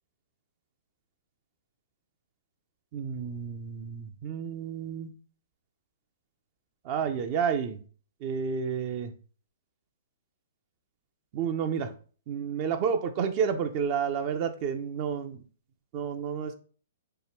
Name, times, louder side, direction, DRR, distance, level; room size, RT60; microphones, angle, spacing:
voice 1, 2.9-5.1 6.8-7.8 8.2-9.1 11.3-11.9 12.3-15.4 15.9-16.5, right 7 dB, 40° right, 9 dB, 0.4 m, -30 dB
4.3 x 2.2 x 3.4 m, 0.41 s
figure-of-eight pair, 115°, 0 cm